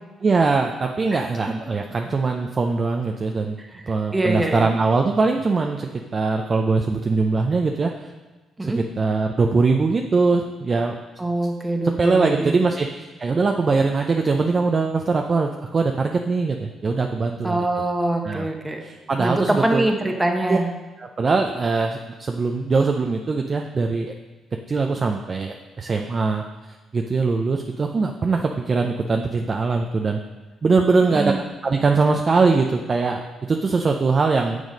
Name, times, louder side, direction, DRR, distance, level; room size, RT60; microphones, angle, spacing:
voice 1, 0.2-3.6 3.9-8.1 8.6-11.0 12.0-17.6 18.2-18.5 18.8-19.8 20.5-20.6 21.0-24.1 24.7-26.4 26.9-30.2 30.6-31.3 31.6-34.6, right 4 dB, 40° right, 3 dB, 0.5 m, -21 dB
voice 2, 3.6-4.7 8.6-8.8 11.2-12.5 17.4-18.8 19.2-20.7 31.1-31.4, right 1 dB, 15° right, 3 dB, 1.0 m, -24 dB
7.0 x 6.4 x 5.2 m, 1.2 s
cardioid pair, 90°, 0 cm